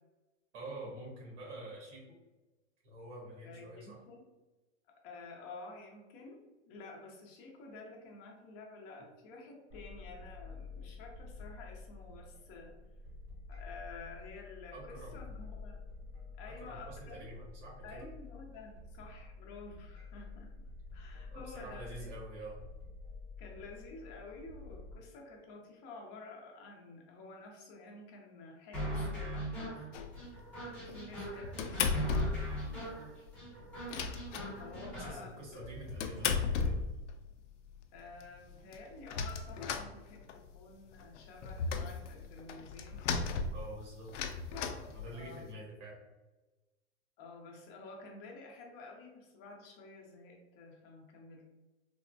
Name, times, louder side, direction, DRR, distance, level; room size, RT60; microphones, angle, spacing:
voice 1, 0.5-2.1 2.8-4.0 14.7-15.2 16.6-18.0 21.3-22.6 34.8-36.8 43.5-44.1 44.7-46.0, right 1 dB, 75° right, -2 dB, 1.4 m, -47 dB
voice 2, 3.4-4.2 5.0-12.7 13.5-15.8 16.4-17.3 17.8-22.1 23.4-29.9 30.8-32.6 34.6-35.7 37.9-43.5 45.1-45.6 47.2-51.4, left 3 dB, 30° left, 0 dB, 0.6 m, -51 dB
sound 1, 9.7-25.0, left 3 dB, 40° right, 0.9 m, -49 dB
sound 2, 28.7-35.1, equal, 5° left, 0.8 m, -40 dB
sound 3, 29.9-30.4 30.9-32.6 32.9-33.0 33.3-33.4 33.6-35.0 35.5-37.3 37.8-37.9 38.2-38.3 38.5-40.6 40.9-45.5, left 5 dB, 80° left, 0.5 m, -36 dB
3.4 x 2.1 x 2.6 m, 1.1 s
supercardioid pair, 150°, 35 cm